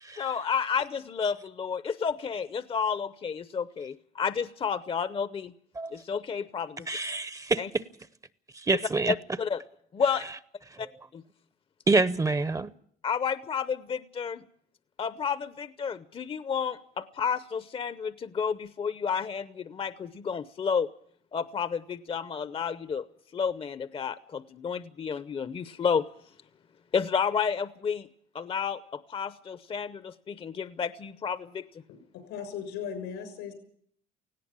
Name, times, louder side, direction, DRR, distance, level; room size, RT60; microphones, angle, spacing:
voice 1, 0.2-5.5 5.9-6.9 7.6-7.7 9.1-9.6 9.9-10.2 10.8-10.9 11.1-11.2 13.0-14.4 15.0-20.9 21.3-23.0 23.3-26.0 26.9-28.1 28.3-31.7, left 6 dB, 35° left, 0.7 m, -31 dB
voice 2, 6.9-7.6 8.5-9.1 10.7-10.8 11.9-12.7, right 3 dB, 20° right, 0.7 m, -26 dB
voice 3, 31.9-33.5, left 7 dB, 90° left, 6.2 m, -38 dB
18.0 x 17.0 x 8.7 m
cardioid pair, 110°, 17 cm